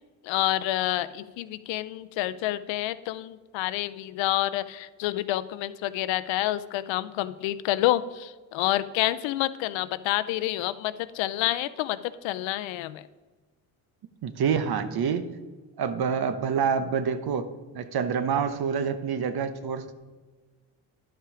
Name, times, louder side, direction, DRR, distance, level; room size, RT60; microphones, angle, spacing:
voice 1, 0.2-13.1, left 15 dB, 80° left, 14 dB, 0.6 m, -28 dB
voice 2, 14.2-15.3 15.8-17.5 17.7-19.9, right 6 dB, 55° right, 11 dB, 0.9 m, -27 dB
11.0 x 5.7 x 4.9 m, 1.4 s
supercardioid pair, 75°, 45 cm